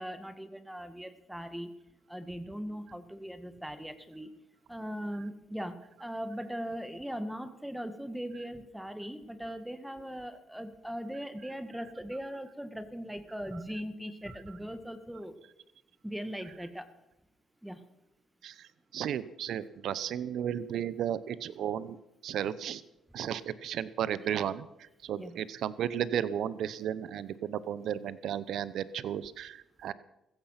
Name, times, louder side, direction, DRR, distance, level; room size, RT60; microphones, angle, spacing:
voice 1, 0.0-1.7 2.1-4.3 4.7-15.4 16.0-16.9 17.6-17.9 25.2-25.4, equal, 5° right, 9 dB, 1.8 m, -39 dB
voice 2, 18.9-22.0 22.2-22.8 23.1-29.9, right 9 dB, 75° right, 17 dB, 0.7 m, -34 dB
15.5 x 15.0 x 5.8 m, 0.90 s
supercardioid pair, 65°, 0 cm